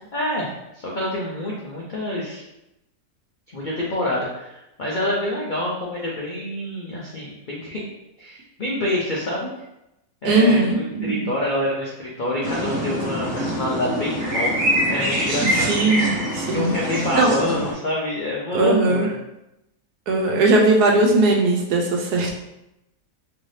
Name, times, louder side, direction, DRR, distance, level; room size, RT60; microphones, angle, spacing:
voice 1, 0.1-2.4 3.5-7.9 8.2-9.5 10.2-15.8 16.5-19.1, left 1 dB, 80° left, -4 dB, 0.4 m, -27 dB
voice 2, 10.2-11.2 15.6-16.7 17.1-17.3 18.5-19.1 20.1-22.3, right 2 dB, 85° right, 0 dB, 1.3 m, -19 dB
sound 1, 12.4-17.7, equal, 60° right, 1.2 m, -24 dB
3.2 x 2.6 x 3.2 m, 0.89 s
omnidirectional pair, 1.7 m